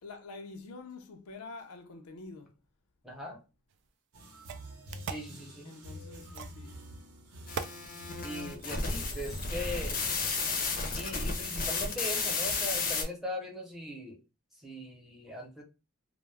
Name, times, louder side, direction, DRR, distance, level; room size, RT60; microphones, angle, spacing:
voice 1, 0.0-2.5 5.6-6.8, left 3 dB, 90° left, 0.5 m, -46 dB
voice 2, 3.0-3.4 5.1-5.8 8.2-9.9 11.0-14.2 14.6-15.6, left 1 dB, ahead, 0.7 m, -40 dB
sound 1, 3.7-3.8 4.4-5.3 6.3-6.6 7.5-7.8, right 6 dB, 55° right, 0.3 m, -39 dB
sound 2, 4.1-12.6, equal, 85° right, 0.8 m, -49 dB
sound 3, 7.5-13.0, left 4 dB, 40° left, 0.6 m, -33 dB
2.3 x 2.0 x 3.2 m
head